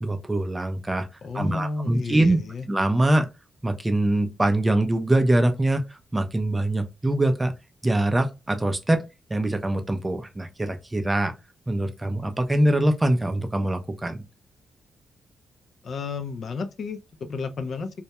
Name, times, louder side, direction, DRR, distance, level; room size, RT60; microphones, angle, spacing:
voice 1, 0.0-1.1 1.3-2.4 2.7-3.3 3.6-7.5 7.8-9.0 9.3-11.3 11.7-14.2, right 1 dB, 15° right, 0.4 m, -23 dB
voice 2, 1.2-2.7 15.8-18.0, left 4 dB, 55° left, 0.4 m, -32 dB
2.2 x 2.1 x 2.8 m
cardioid pair, 110°, 0 cm